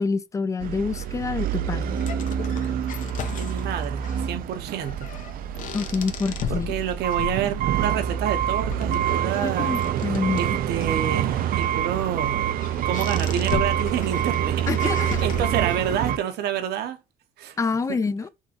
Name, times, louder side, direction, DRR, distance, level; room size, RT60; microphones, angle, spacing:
voice 1, 0.0-2.0 5.7-6.7 9.4-10.4 14.7-15.1 17.6-18.3, left 4 dB, 20° left, 0.3 m, -27 dB
sound 1, 0.6-16.2, right 10 dB, 60° right, 0.4 m, -26 dB
sound 2, 1.0-16.0, left 8 dB, 50° left, 0.7 m, -37 dB
voice 2, 3.3-5.1 6.5-12.5 12.8-17.0 17.4-17.6 17.9-18.0, right 9 dB, 75° right, 0.8 m, -29 dB
5.4 x 3.0 x 2.8 m
cardioid pair, 110°, 17 cm